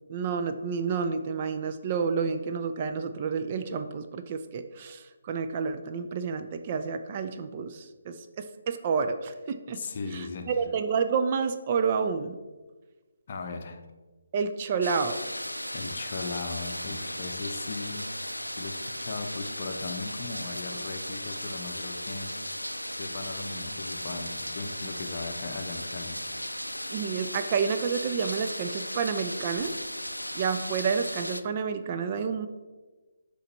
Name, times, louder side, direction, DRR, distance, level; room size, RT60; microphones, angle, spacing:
voice 1, 0.1-9.8 10.1-12.4 14.3-15.2 26.9-29.7 30.3-32.5, right 5 dB, 30° right, 0.3 m, -29 dB
voice 2, 9.7-10.5 13.3-13.8 15.7-18.2 18.5-26.3, left 4 dB, 40° left, 0.6 m, -38 dB
sound 1, 14.8-31.4, left 1 dB, 85° left, 0.4 m, -36 dB
7.7 x 3.1 x 4.0 m
figure-of-eight pair, 145°, 0 cm